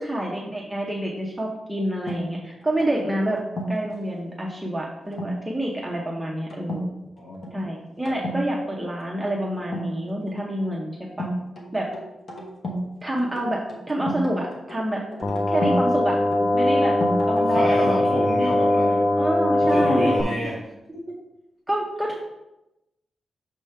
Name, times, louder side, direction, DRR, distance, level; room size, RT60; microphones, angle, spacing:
voice 1, 0.0-3.4 3.7-6.9 7.5-11.3 11.7-11.9 13.0-15.0 15.5-16.2 16.5-17.0 17.3-18.3 19.2-20.1 21.1-21.2 21.7-22.2, right 1 dB, 5° right, -3 dB, 0.7 m, -28 dB
sound 1, 2.1-3.9 5.1-5.4 5.8-6.1 6.5-6.9 7.2-7.6 8.0-8.4 9.6-10.4 11.2-12.9 13.2-15.8 16.3-17.8, equal, 45° left, 1.2 m, -32 dB
voice 2, 7.2-7.5 17.3-19.1 19.6-20.6, left 1 dB, 65° left, -7 dB, 2.2 m, -28 dB
sound 2, 15.2-20.2, left 1 dB, 30° left, 0.4 m, -21 dB
6.4 x 5.0 x 3.3 m, 0.92 s
wide cardioid pair, 145°, 0 cm